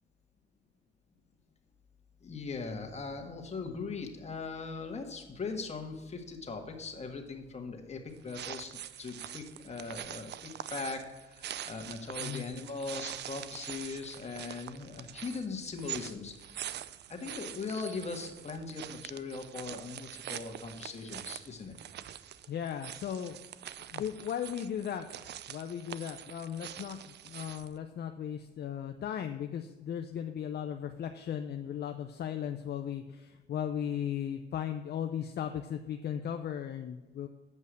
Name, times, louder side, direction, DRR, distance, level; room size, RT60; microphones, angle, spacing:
voice 1, 2.2-8.7 9.0-16.6 17.1-21.8, left 4 dB, 35° left, 3 dB, 1.6 m, -40 dB
sound 1, 8.1-27.8, right 11 dB, 60° right, 0.4 m, -44 dB
voice 2, 12.2-12.5 22.5-23.4 23.9-25.0 25.5-27.0 27.2-37.3, left 9 dB, 55° left, 6 dB, 0.6 m, -36 dB
8.3 x 5.4 x 6.3 m, 1.2 s
cardioid pair, 90°, 20 cm